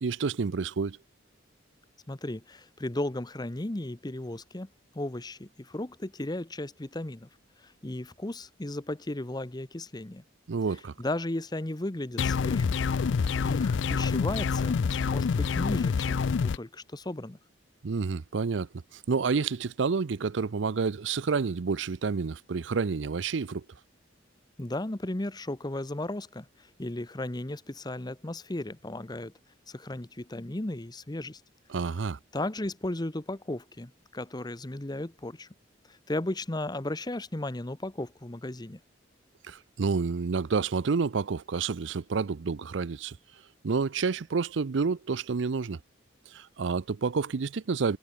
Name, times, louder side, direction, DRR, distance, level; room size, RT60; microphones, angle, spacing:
voice 1, 0.0-1.0 10.5-10.9 17.8-23.6 31.7-32.2 39.4-43.2 43.6-45.8 46.3-48.0, right 5 dB, 65° right, 0.5 m, -29 dB
voice 2, 2.1-4.7 4.9-7.3 7.6-10.2 11.0-12.8 13.4-17.4 24.6-29.3 29.7-31.4 32.3-35.5 35.9-38.8, left 1 dB, 20° left, 0.9 m, -35 dB
sound 1, 12.2-16.6, left 5 dB, 65° left, 0.4 m, -27 dB
head